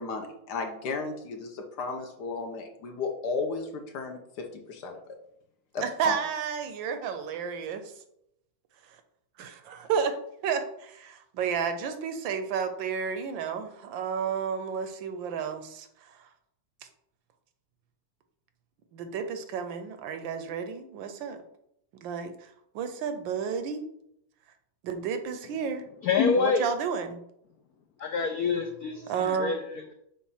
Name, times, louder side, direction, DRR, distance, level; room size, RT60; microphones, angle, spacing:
voice 1, 0.0-5.0 5.7-6.2, left 4 dB, 65° left, 4 dB, 1.2 m, -34 dB
voice 2, 5.8-7.8 9.4-15.9 18.9-21.4 22.0-22.3 22.7-23.8 24.8-25.8 26.4-27.2 29.1-29.5, right 6 dB, 75° right, 8 dB, 1.3 m, -31 dB
voice 3, 26.0-26.7 28.0-29.9, left 5 dB, 85° left, 5 dB, 0.8 m, -27 dB
7.1 x 2.5 x 5.5 m, 0.76 s
omnidirectional pair, 2.2 m